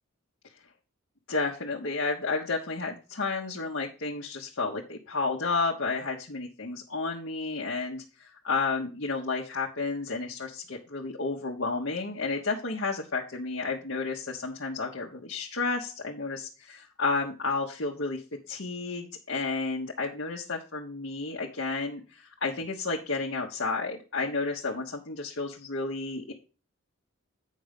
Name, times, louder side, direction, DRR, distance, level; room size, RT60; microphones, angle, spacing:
voice 1, 1.3-18.2 18.5-26.3, left 3 dB, 60° left, -2 dB, 1.1 m, -31 dB
8.5 x 5.3 x 5.1 m, 0.33 s
head